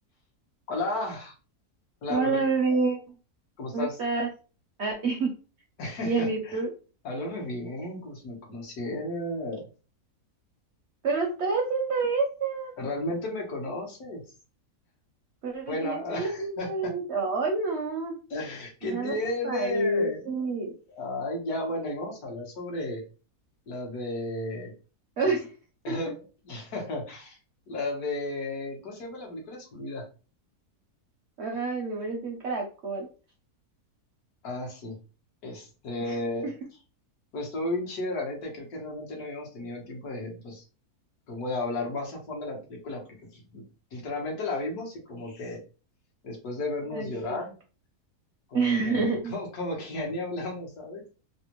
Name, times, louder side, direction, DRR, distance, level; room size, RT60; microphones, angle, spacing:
voice 1, 0.7-1.3 2.0-2.4 3.6-4.0 5.8-6.6 7.0-9.7 12.8-14.2 15.7-16.9 18.3-20.5 20.9-23.0 23.7-24.7 25.8-26.1 26.4-27.4 27.7-30.0 34.4-35.0 35.4-36.5 37.3-40.6 41.3-43.6 43.9-45.6 46.2-47.5 48.5-51.0, left 2 dB, 70° left, 0 dB, 1.5 m, -34 dB
voice 2, 2.1-3.0 3.7-4.3 4.8-5.3 6.0-6.7 11.0-12.7 15.4-18.1 18.8-19.1 19.4-20.7 25.2-25.5 25.9-26.0 31.4-33.1 36.0-36.2 46.9-47.4 48.5-49.3, right 3 dB, 65° right, 1 dB, 0.7 m, -28 dB
3.4 x 2.2 x 2.9 m, 0.35 s
omnidirectional pair, 1.7 m